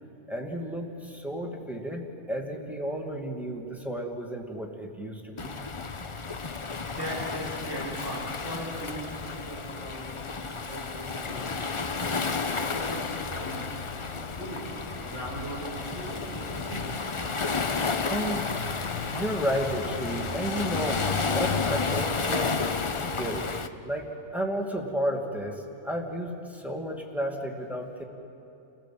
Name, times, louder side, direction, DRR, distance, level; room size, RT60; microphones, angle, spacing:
voice 1, 0.3-5.7 18.0-18.5 19.1-22.6 23.0-23.5 23.8-28.0, equal, ahead, 1 dB, 2.1 m, -32 dB
Waves surf, 5.4-23.7, left 4 dB, 35° left, 0.5 m, -32 dB
voice 2, 6.8-11.6 12.1-14.7 14.9-16.9, equal, 55° right, -5 dB, 5.6 m, -39 dB
sound 1, 11.2-23.7, left 6 dB, 60° left, 1.2 m, -40 dB
29.5 x 17.0 x 7.5 m, 2.8 s
omnidirectional pair, 1.5 m